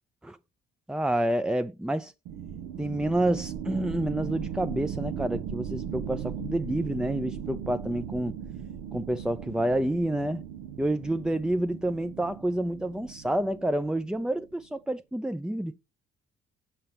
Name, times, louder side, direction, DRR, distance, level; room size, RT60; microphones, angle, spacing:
voice 1, 0.9-2.1 2.8-8.4 8.9-10.4 10.8-15.7, right 1 dB, 5° right, 0.3 m, -28 dB
sound 1, 2.3-14.5, right 8 dB, 85° right, 0.7 m, -38 dB
5.8 x 5.4 x 3.0 m
hypercardioid pair, 45°, 29 cm